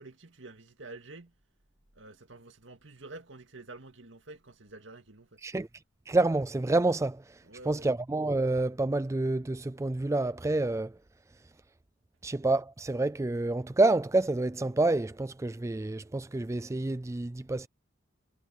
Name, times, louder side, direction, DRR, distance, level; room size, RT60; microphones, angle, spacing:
voice 1, 0.0-1.3 1.9-5.4 7.4-7.9, right 2 dB, 70° right, 2.2 m, -48 dB
voice 2, 6.1-7.4 7.7-10.9 12.2-17.7, right 2 dB, 15° right, 0.3 m, -28 dB
head